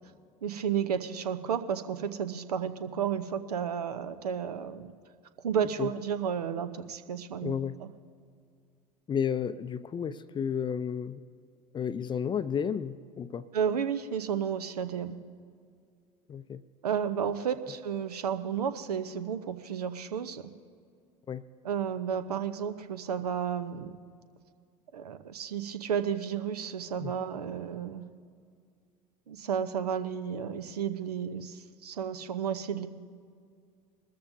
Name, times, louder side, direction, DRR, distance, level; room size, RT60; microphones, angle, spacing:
voice 1, 0.4-4.9 5.4-7.5 7.8-7.9 13.5-15.2 16.8-20.5 21.6-24.0 24.9-28.0 29.3-32.9, right 7 dB, 75° right, 11 dB, 0.8 m, -32 dB
voice 2, 7.4-7.8 9.1-11.2 11.7-13.5 16.3-16.6 21.3-21.4 27.0-27.2, left 7 dB, 25° left, 14 dB, 0.5 m, -32 dB
22.0 x 13.5 x 2.7 m, 2.2 s
figure-of-eight pair, 75°, 20 cm